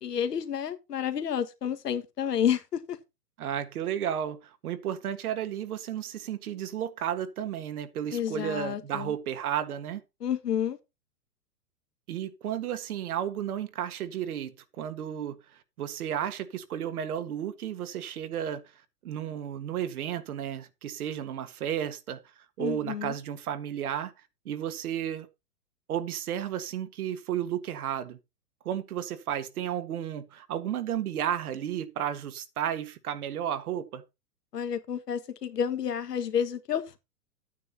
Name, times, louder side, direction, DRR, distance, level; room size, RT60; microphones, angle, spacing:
voice 1, 0.0-3.0 8.1-9.1 10.2-10.8 22.6-23.1 34.5-37.0, left 8 dB, 80° left, 1.7 m, -30 dB
voice 2, 3.4-10.0 12.1-15.4 15.8-18.6 19.0-22.2 22.6-24.1 24.5-25.3 25.9-28.2 28.7-34.0, right 10 dB, 65° right, 1.7 m, -33 dB
12.5 x 9.3 x 2.8 m
hypercardioid pair, 125°, 47 cm